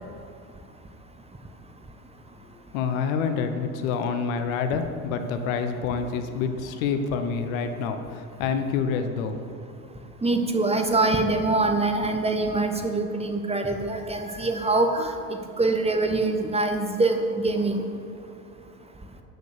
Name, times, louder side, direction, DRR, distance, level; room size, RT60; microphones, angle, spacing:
voice 1, 2.7-9.4, left 6 dB, 60° left, 7 dB, 1.1 m, -27 dB
voice 2, 10.2-15.1 15.6-17.8, right 2 dB, 15° right, 5 dB, 1.2 m, -24 dB
12.0 x 6.7 x 6.5 m, 2.6 s
figure-of-eight pair, 65°, 46 cm